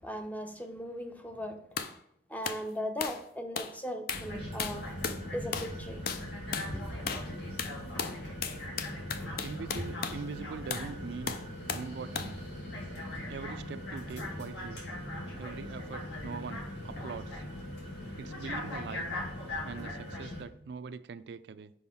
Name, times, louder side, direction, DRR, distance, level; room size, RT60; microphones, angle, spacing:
voice 1, 0.0-1.6 2.3-4.9 5.3-6.0 6.7-7.0, equal, 10° left, 0.6 m, -38 dB
sound 1, 1.8-2.0 2.4-2.6 3.0-3.2 3.6-3.8 4.1-4.3 4.6-5.2 5.5-5.8 6.1-6.3 6.5-6.7 7.1-7.3 7.6-10.2 10.7-10.9 11.3-11.9 12.2-12.4, left 6 dB, 55° left, 0.5 m, -36 dB
sound 2, 4.1-20.4, left 1 dB, 70° left, 2.0 m, -40 dB
voice 2, 9.4-11.3 11.7-12.4 13.3-14.8 15.4-17.4 18.2-19.1 19.6-21.7, right 5 dB, 65° right, 0.3 m, -42 dB
5.4 x 5.1 x 4.2 m
head